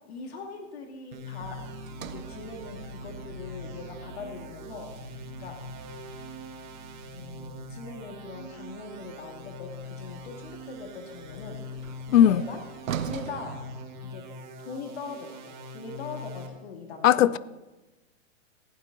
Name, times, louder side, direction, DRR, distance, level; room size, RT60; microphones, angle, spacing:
voice 1, 0.1-1.6 2.0-5.1 5.4-5.6 7.1-12.6 13.0-13.6 14.0-14.2 14.6-17.4, left 4 dB, 50° left, 2.2 m, -41 dB
sound 1, 1.1-16.5, left 1 dB, 35° right, 1.3 m, -43 dB
sound 2, 1.4-12.8, right 1 dB, 60° right, 3.6 m, -48 dB
Sliding door, 1.9-6.1 9.6-14.5, right 8 dB, 85° right, 1.0 m, -42 dB
voice 2, 12.1-12.4 17.0-17.4, left 11 dB, 75° left, 0.6 m, -17 dB
15.5 x 11.5 x 3.9 m
hypercardioid pair, 170°, 39 cm